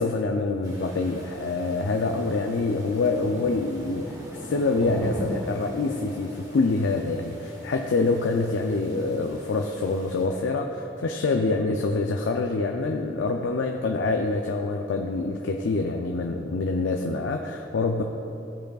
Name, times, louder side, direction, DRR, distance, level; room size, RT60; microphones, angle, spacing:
voice 1, 0.0-18.0, left 3 dB, 75° left, 3 dB, 0.4 m, -26 dB
sound 1, 0.6-10.3, equal, 20° right, 1.0 m, -40 dB
15.0 x 5.1 x 2.3 m, 2.9 s
head